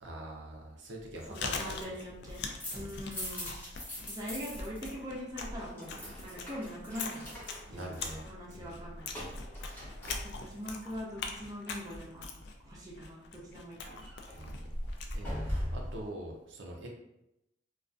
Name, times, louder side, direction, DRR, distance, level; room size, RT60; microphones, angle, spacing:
voice 1, 0.0-1.6 2.7-3.0 7.7-8.2 8.5-8.8 14.3-14.8 15.1-16.9, right 1 dB, 75° right, 0 dB, 0.5 m, -44 dB
Chewing mastication, 1.0-16.1, left 4 dB, 60° left, 0.3 m, -43 dB
voice 2, 1.3-2.4 2.7-3.5 4.1-7.3 7.7-9.1 10.2-12.2 12.6-14.0, equal, 20° right, -5 dB, 0.5 m, -42 dB
sound 1, 2.2-4.9 5.2-10.8 13.8-16.0, equal, 10° left, 0.8 m, -41 dB
2.4 x 2.3 x 2.3 m, 0.86 s
head